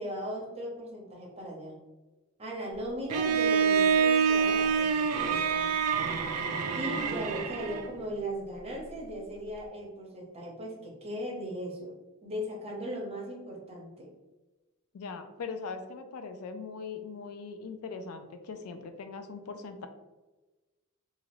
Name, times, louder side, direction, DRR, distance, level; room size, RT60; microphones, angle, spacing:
voice 1, 0.0-1.8 2.4-5.8 6.7-11.9 12.2-14.1, equal, 30° right, -2 dB, 0.8 m, -38 dB
Bowed string instrument, 3.1-8.0, right 6 dB, 80° right, 0.4 m, -26 dB
voice 2, 14.9-19.9, left 4 dB, 75° left, 7 dB, 0.4 m, -40 dB
2.9 x 2.4 x 3.0 m, 1.2 s
head